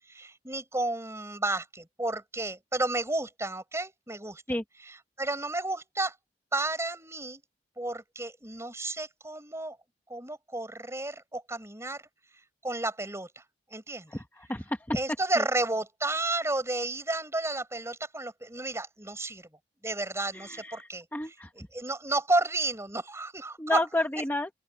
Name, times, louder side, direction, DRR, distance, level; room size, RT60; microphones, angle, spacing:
voice 1, 0.1-4.4 4.8-6.1 6.5-7.4 7.8-9.8 10.1-12.0 12.6-13.4 13.7-14.2 14.9-19.5 19.8-23.8, right 2 dB, 15° right, 7.1 m, -32 dB
voice 2, 14.1-15.0 20.3-21.5 23.6-24.5, left 1 dB, 10° left, 1.3 m, -31 dB
open air
head